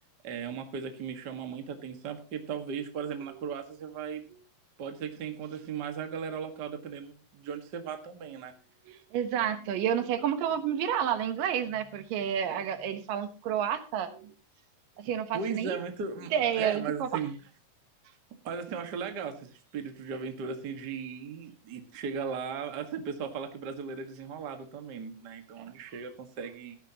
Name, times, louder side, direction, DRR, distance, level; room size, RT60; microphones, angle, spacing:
voice 1, 0.2-4.2 4.8-8.5 15.3-17.3 18.4-26.8, right 6 dB, 40° right, 6 dB, 1.6 m, -37 dB
voice 2, 8.9-14.3 15.0-15.8 16.3-17.2 25.6-25.7, right 9 dB, 75° right, 9 dB, 2.7 m, -30 dB
16.0 x 12.5 x 2.9 m, 0.35 s
omnidirectional pair, 4.0 m